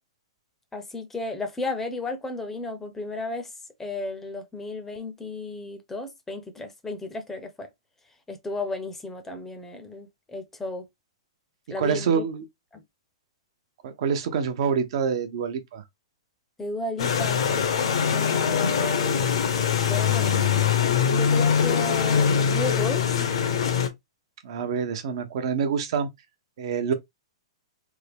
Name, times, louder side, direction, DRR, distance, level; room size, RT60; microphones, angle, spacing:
voice 1, 0.7-3.5 3.8-7.7 8.3-10.8 11.7-12.2 12.7-12.8 16.6-17.4 18.1-20.5 21.1-23.1, left 3 dB, 10° left, 0.6 m, -34 dB
voice 2, 11.8-12.4 13.8-15.8 24.4-26.1 26.6-26.9, right 6 dB, 60° right, 0.7 m, -26 dB
sound 1, 17.0-23.9, left 7 dB, 70° left, 0.9 m, -23 dB
3.5 x 2.1 x 3.3 m
hypercardioid pair, 135°, 3 cm